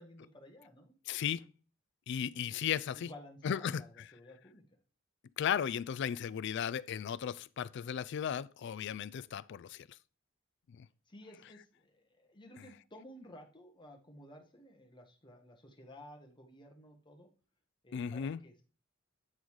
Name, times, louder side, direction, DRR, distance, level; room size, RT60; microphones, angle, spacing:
voice 1, 0.0-1.0 2.3-2.5 2.9-4.6 11.1-17.3 17.8-18.6, left 1 dB, 25° left, 1.3 m, -54 dB
voice 2, 1.1-1.5 2.1-3.1 3.4-3.8 5.4-9.9 10.8-10.9 17.9-18.4, left 8 dB, 60° left, 0.3 m, -35 dB
8.8 x 3.9 x 4.7 m
head